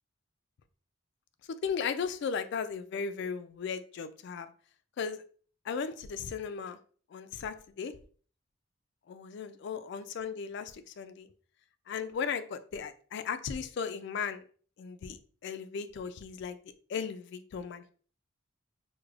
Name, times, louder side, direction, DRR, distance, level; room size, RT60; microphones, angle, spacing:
voice 1, 1.6-4.5 5.0-5.2 5.7-6.8 7.1-7.9 9.1-11.3 11.9-14.4 14.8-15.2 15.4-16.6 16.9-17.9, left 6 dB, 55° left, 11 dB, 0.3 m, -36 dB
4.7 x 2.1 x 2.3 m, 0.43 s
head